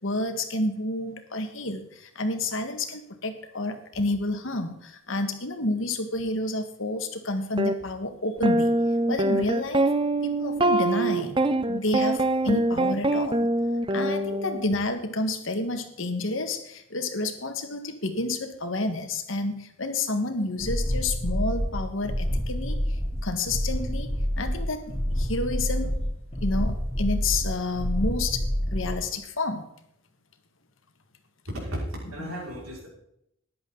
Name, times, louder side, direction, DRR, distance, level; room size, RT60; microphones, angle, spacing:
voice 1, 0.0-8.7 9.1-9.9 10.2-13.5 13.9-24.1 24.4-25.9 26.4-28.4 28.7-29.7 32.2-32.4, left 2 dB, 65° left, 7 dB, 1.7 m, -30 dB
sound 1, 7.6-7.7 8.4-14.8, right 1 dB, 25° right, 0.6 m, -24 dB
sound 2, 20.6-29.0, equal, 30° left, 3.7 m, -28 dB
voice 2, 31.5-32.9, equal, 90° right, -2 dB, 5.6 m, -35 dB
14.0 x 10.5 x 4.0 m, 0.74 s
head